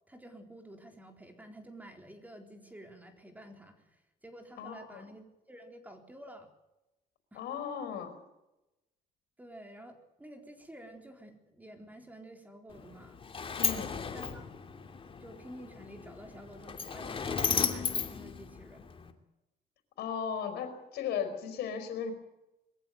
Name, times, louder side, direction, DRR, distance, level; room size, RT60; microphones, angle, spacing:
voice 1, 0.1-6.5 7.3-7.4 9.4-13.2 14.1-14.5 15.2-18.9, right 1 dB, 10° right, 5 dB, 4.0 m, -50 dB
voice 2, 4.6-5.0 7.3-8.1 13.6-14.0 20.0-22.1, left 7 dB, 75° left, 9 dB, 4.9 m, -36 dB
Sliding door, 12.7-19.1, left 6 dB, 30° left, 2.7 m, -35 dB
22.5 x 15.0 x 9.4 m, 0.95 s
cardioid pair, 110°, 17 cm